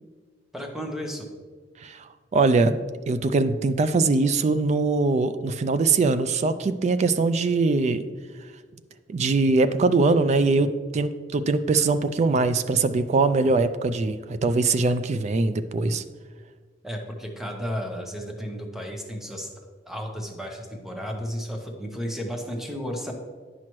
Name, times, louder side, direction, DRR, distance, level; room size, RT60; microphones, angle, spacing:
voice 1, 0.5-1.3 16.8-19.5 19.8-23.1, equal, ahead, 2 dB, 0.9 m, -33 dB
voice 2, 1.8-2.8 3.1-8.0 9.1-16.0, right 3 dB, 40° right, 12 dB, 0.3 m, -22 dB
9.6 x 5.9 x 3.1 m, 1.6 s
head